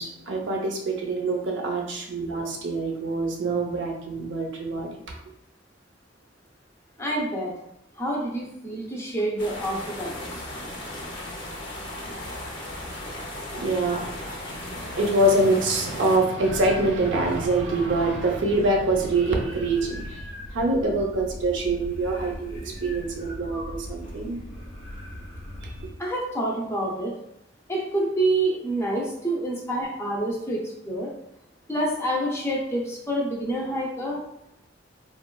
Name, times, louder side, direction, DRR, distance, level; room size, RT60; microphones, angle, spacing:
voice 1, 0.0-4.9 13.5-20.2 20.5-24.4 25.6-25.7, right 2 dB, 70° right, 1 dB, 0.5 m, -25 dB
voice 2, 7.0-7.5 8.0-10.3 26.0-27.1 27.7-31.1 31.7-34.2, right 1 dB, 15° left, -3 dB, 0.5 m, -27 dB
sound 1, 9.4-16.2, left 1 dB, 65° left, 0.7 m, -36 dB
sound 2, 16.4-25.9, equal, 85° left, 1.0 m, -39 dB
3.0 x 2.2 x 2.2 m, 0.83 s
head